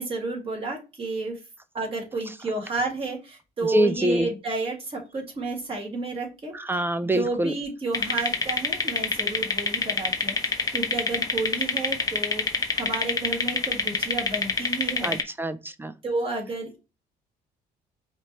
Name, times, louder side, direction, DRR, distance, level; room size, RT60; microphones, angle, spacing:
voice 1, 0.0-1.4 1.7-6.5 7.0-12.4 12.7-15.2 16.0-16.8, right 3 dB, 35° right, 1.9 m, -31 dB
voice 2, 3.6-4.3 6.5-7.5 15.0-15.9, right 1 dB, 15° right, 0.4 m, -25 dB
sound 1, 7.9-15.2, left 4 dB, 20° left, 0.8 m, -26 dB
5.0 x 2.9 x 2.9 m
cardioid pair, 110°, 17 cm